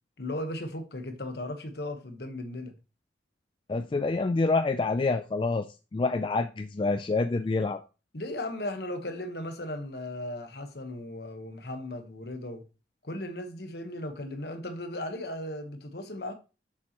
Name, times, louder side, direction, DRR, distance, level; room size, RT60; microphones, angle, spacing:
voice 1, 0.2-2.8 8.1-12.7 13.0-16.3, left 1 dB, 60° left, 1.2 m, -36 dB
voice 2, 3.7-7.8, left 3 dB, 25° left, 0.3 m, -27 dB
7.7 x 7.0 x 3.0 m
head